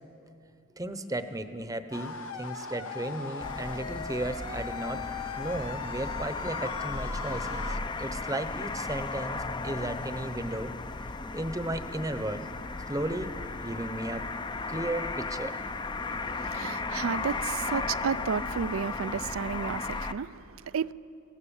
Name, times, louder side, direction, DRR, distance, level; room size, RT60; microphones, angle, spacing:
voice 1, 0.7-5.0 5.3-10.7 11.3-12.5 12.9-14.3 14.7-15.6, right 1 dB, 15° right, 0.8 m, -35 dB
sound 1, 1.9-7.8, left 5 dB, 80° left, 1.2 m, -39 dB
sound 2, 3.4-20.1, left 3 dB, 20° left, 0.5 m, -35 dB
voice 2, 16.1-20.9, right 6 dB, 65° right, 0.4 m, -32 dB
22.5 x 17.0 x 7.1 m
head